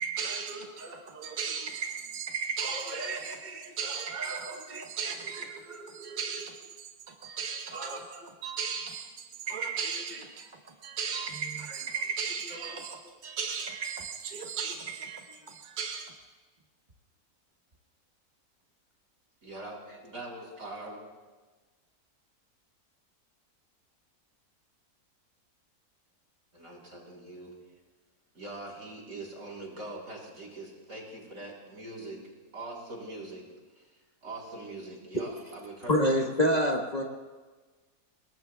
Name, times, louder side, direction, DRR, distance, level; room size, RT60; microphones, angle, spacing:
voice 1, 0.0-16.1, right 6 dB, 35° right, 1.1 m, -36 dB
voice 2, 19.4-21.0 26.5-27.5 28.3-32.2 32.5-33.4 33.7-36.0, right 2 dB, 70° right, 4.4 m, -43 dB
voice 3, 35.9-37.0, left 1 dB, 30° left, 1.3 m, -24 dB
29.0 x 19.5 x 2.3 m
omnidirectional pair, 1.6 m